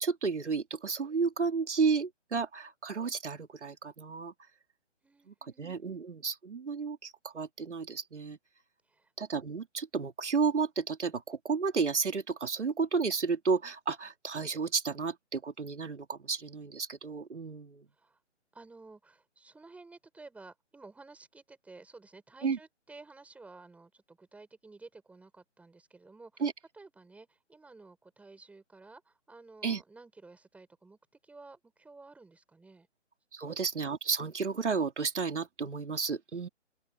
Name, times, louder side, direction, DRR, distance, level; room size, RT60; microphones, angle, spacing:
voice 1, 0.0-4.3 5.3-8.4 9.2-17.9 22.4-22.6 26.4-26.5 29.6-29.8 33.3-36.5, right 5 dB, 70° right, 3.7 m, -32 dB
voice 2, 5.0-6.0 8.8-9.1 17.9-18.2 18.5-26.5 26.7-32.9 33.4-33.6, right 3 dB, 5° right, 5.0 m, -53 dB
open air
figure-of-eight pair, 150°, 36 cm